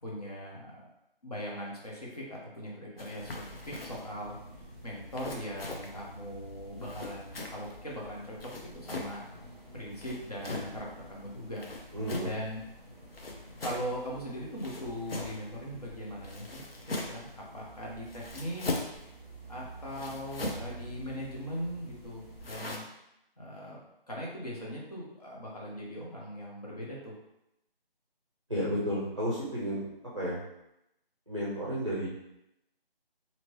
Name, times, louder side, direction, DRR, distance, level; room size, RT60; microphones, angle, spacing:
voice 1, 0.0-0.9 1.2-4.4 4.8-9.2 9.7-11.7 12.2-12.6 13.6-16.6 16.9-17.3 17.5-18.8 19.5-22.8 23.4-23.8 24.1-27.2, equal, 40° left, -4 dB, 0.9 m, -40 dB
sound 1, 3.0-4.1 5.1-6.0 6.8-7.8 8.4-9.2 9.9-10.8 11.6-12.4 13.1-13.9 14.6-15.5 16.2-17.3 18.1-19.0 19.9-20.7 22.4-22.8, left 2 dB, 75° left, 0.8 m, -39 dB
sound 2, 3.1-22.5, right 1 dB, 20° left, 1.1 m, -50 dB
voice 2, 11.9-12.3 28.5-29.9 30.1-30.4 31.3-32.1, equal, 30° right, -8 dB, 0.6 m, -32 dB
2.9 x 2.8 x 3.0 m, 0.86 s
figure-of-eight pair, 175°, 29 cm